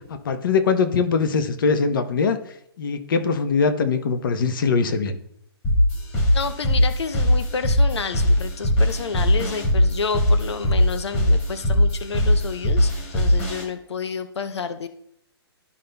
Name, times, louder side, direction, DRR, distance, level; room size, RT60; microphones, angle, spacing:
voice 1, 0.1-2.4 2.8-5.2, left 5 dB, 50° left, 8 dB, 0.9 m, -22 dB
sound 1, 5.6-13.6, left 1 dB, 20° left, 1.9 m, -20 dB
voice 2, 6.3-14.9, left 5 dB, 85° left, 10 dB, 0.7 m, -30 dB
12.5 x 5.4 x 2.3 m, 0.72 s
hypercardioid pair, 160°, 14 cm